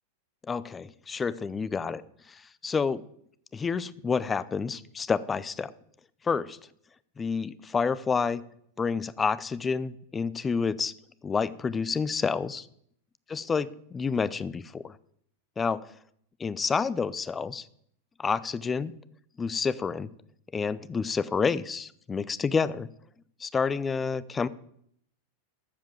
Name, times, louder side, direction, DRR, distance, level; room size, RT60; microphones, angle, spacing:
voice 1, 0.5-2.0 2.3-3.0 3.5-5.7 6.2-6.6 7.2-8.4 8.8-10.9 11.2-12.7 13.3-15.0 15.6-15.8 16.4-17.7 18.2-18.9 19.4-20.1 20.5-22.9 23.4-24.5, left 5 dB, 15° left, 17 dB, 0.6 m, -29 dB
13.0 x 7.4 x 7.5 m, 0.69 s
figure-of-eight pair, 90°, 0 cm